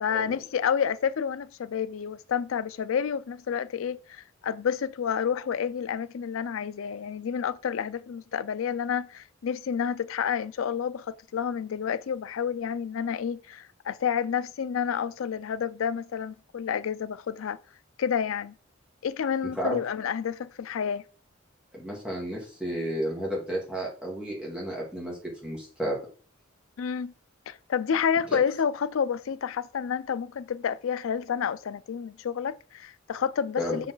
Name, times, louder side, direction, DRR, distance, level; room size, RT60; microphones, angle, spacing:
voice 1, 0.0-17.6 18.0-18.5 19.0-21.0 26.8-27.1 27.5-33.9, left 7 dB, 75° left, 0.4 m, -29 dB
voice 2, 21.7-26.0 28.3-28.4 33.6-33.8, equal, 5° right, 1.9 m, -32 dB
5.6 x 4.7 x 3.9 m
head